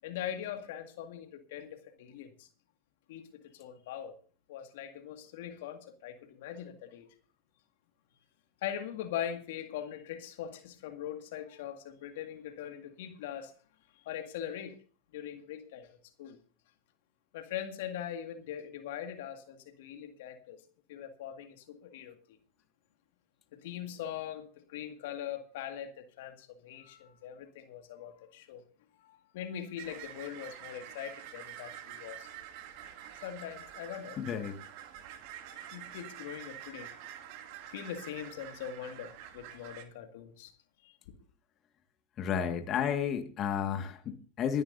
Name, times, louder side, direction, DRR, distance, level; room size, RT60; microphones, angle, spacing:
voice 1, 0.0-2.5 3.1-4.2 4.5-7.1 8.6-13.5 14.1-14.7 15.1-15.9 16.2-16.4 17.3-20.6 20.9-22.2 23.5-28.6 29.0-32.3 33.2-34.2 35.7-36.9 37.7-40.5 40.8-40.9, left 10 dB, 70° left, 1.9 m, -41 dB
sound 1, 29.8-39.8, right 10 dB, 60° right, 2.5 m, -47 dB
voice 2, 34.2-34.6 42.2-44.6, left 8 dB, 40° left, 1.8 m, -32 dB
26.5 x 10.5 x 2.7 m
hypercardioid pair, 100°, 0 cm